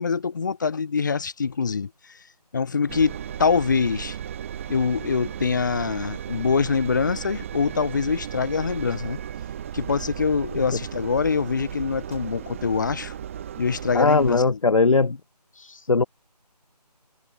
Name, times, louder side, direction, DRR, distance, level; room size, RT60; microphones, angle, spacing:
voice 1, 0.0-2.2 2.5-4.2 4.7-9.2 9.7-13.1 13.6-14.6, left 5 dB, 30° left, 1.2 m, -24 dB
Engine, 2.9-14.4, right 9 dB, 20° right, 2.6 m, -35 dB
voice 2, 13.9-15.2 15.5-16.0, left 3 dB, 50° left, 1.7 m, -20 dB
figure-of-eight pair, 160°, 21 cm